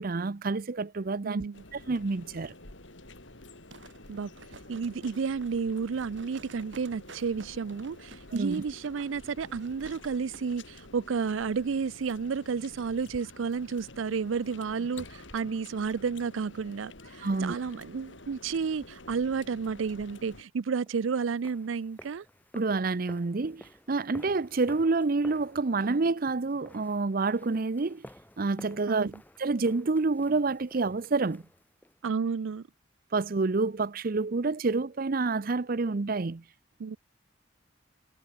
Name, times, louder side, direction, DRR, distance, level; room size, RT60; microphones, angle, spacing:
voice 1, 0.0-1.4 1.7-2.5 8.3-8.6 17.2-17.6 22.5-28.0 28.4-29.1 29.4-31.4 33.1-36.4, right 3 dB, 50° right, 0.6 m, -28 dB
voice 2, 1.2-1.6 4.1-4.3 4.7-22.2 28.9-29.2 32.0-32.7 36.8-37.0, right 5 dB, 90° right, 0.5 m, -31 dB
sound 1, 1.5-20.4, left 2 dB, 75° left, 4.6 m, -49 dB
sound 2, 3.7-10.5 10.8-10.9, right 3 dB, 70° right, 2.6 m, -52 dB
sound 3, 20.9-32.0, left 1 dB, 10° left, 1.8 m, -53 dB
head